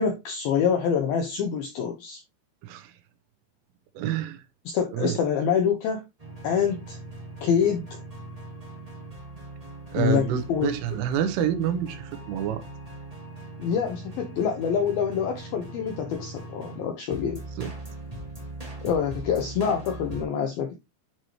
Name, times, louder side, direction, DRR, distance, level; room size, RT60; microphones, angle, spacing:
voice 1, 0.0-2.2 4.7-6.1 6.4-7.0 7.4-7.9 10.0-10.8 13.6-17.4 18.8-20.8, left 7 dB, 80° left, 2.2 m, -26 dB
voice 2, 2.6-2.9 4.0-4.4 4.9-5.2 9.9-12.6 17.6-17.7, right 10 dB, 90° right, 3.5 m, -27 dB
sound 1, 6.2-20.2, right 2 dB, 55° right, 0.4 m, -40 dB
9.6 x 4.5 x 3.0 m
omnidirectional pair, 5.6 m